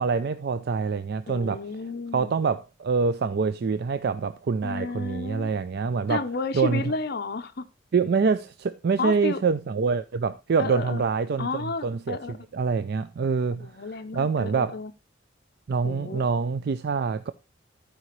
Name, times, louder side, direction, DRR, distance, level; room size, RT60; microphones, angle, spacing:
voice 1, 0.0-1.6 2.1-6.2 6.5-6.9 7.9-13.7 14.1-14.8 15.7-17.3, right 5 dB, 60° right, 0.4 m, -25 dB
voice 2, 1.3-2.3 4.6-5.5 6.1-7.6 9.0-9.4 10.6-11.1 11.4-12.3 13.6-14.9 15.8-16.2, left 3 dB, 55° left, 0.7 m, -32 dB
14.0 x 5.0 x 3.1 m
head